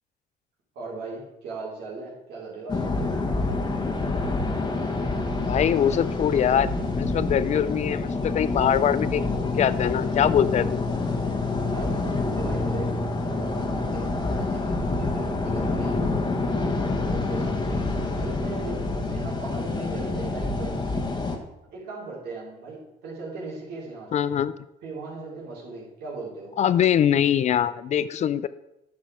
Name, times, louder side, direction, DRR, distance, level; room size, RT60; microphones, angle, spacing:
voice 1, 0.8-3.1 11.6-16.2 16.6-20.8 21.7-24.3 24.8-26.5, right 3 dB, 75° right, -5 dB, 3.9 m, -38 dB
sound 1, 2.7-21.4, left 3 dB, 25° left, 1.3 m, -27 dB
voice 2, 5.4-10.8 24.1-24.5 26.6-28.5, left 9 dB, 45° left, 16 dB, 0.4 m, -23 dB
10.0 x 6.1 x 4.8 m, 0.90 s
cardioid pair, 110°, 17 cm